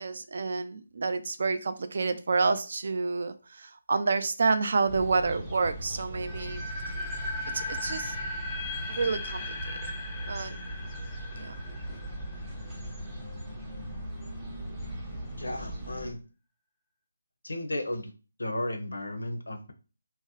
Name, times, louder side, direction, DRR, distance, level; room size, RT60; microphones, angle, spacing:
voice 1, 0.0-6.7 7.5-8.2 8.9-9.8 10.3-10.6 11.4-11.5, right 4 dB, 55° right, 10 dB, 0.3 m, -29 dB
sound 1, 4.9-16.1, right 1 dB, 5° right, 0.7 m, -39 dB
sound 2, 6.2-13.1, left 2 dB, 15° left, 0.4 m, -38 dB
voice 2, 15.4-16.2 17.4-18.1 18.4-19.7, left 1 dB, 80° left, 7 dB, 0.5 m, -34 dB
2.7 x 2.0 x 2.7 m, 0.33 s
figure-of-eight pair, 155°, 0 cm